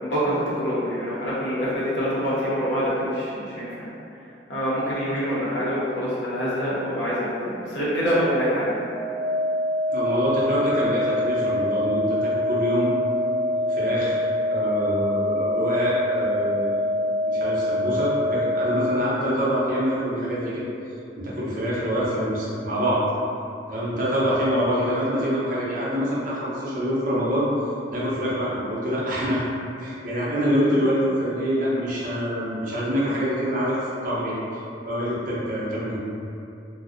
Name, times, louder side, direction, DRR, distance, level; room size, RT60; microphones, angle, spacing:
voice 1, 0.0-3.9 4.5-8.8, equal, 75° left, -9 dB, 0.6 m, -25 dB
sound 1, 8.8-18.8, left 1 dB, 5° left, 0.6 m, -25 dB
voice 2, 9.9-12.9 13.7-16.7 17.2-20.6 21.2-23.0 23.7-27.5 27.9-29.4 29.8-34.4 34.8-36.0, equal, 50° right, -8 dB, 0.6 m, -25 dB
2.5 x 2.0 x 2.4 m, 2.7 s
head